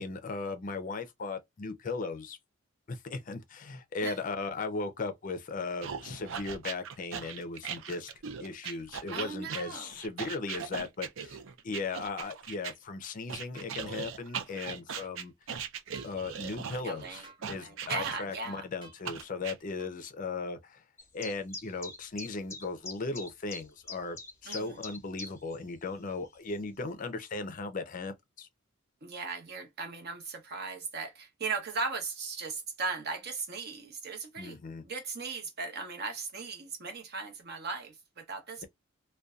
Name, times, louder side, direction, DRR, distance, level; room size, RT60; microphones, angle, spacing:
voice 1, 0.0-2.4 2.9-8.1 8.4-11.4 11.6-15.3 16.0-20.8 21.1-28.5 34.4-34.8, left 3 dB, 40° left, 0.4 m, -37 dB
sound 1, 5.8-12.7 13.3-18.5 19.0-19.5, right 7 dB, 65° right, 0.4 m, -39 dB
sound 2, 8.6-8.9 13.5-13.7 14.9-15.1 15.9-16.2 17.2-17.5 18.8-19.0 19.8-20.0, right 2 dB, 25° right, 0.7 m, -53 dB
voice 2, 9.1-9.9 16.8-18.6 24.5-24.8 29.0-34.6 34.8-38.7, right 4 dB, 50° right, 0.8 m, -38 dB
sound 3, 21.0-25.6 25.8-25.9 26.5-26.6, left 3 dB, 15° left, 0.8 m, -43 dB
2.6 x 2.2 x 2.3 m
head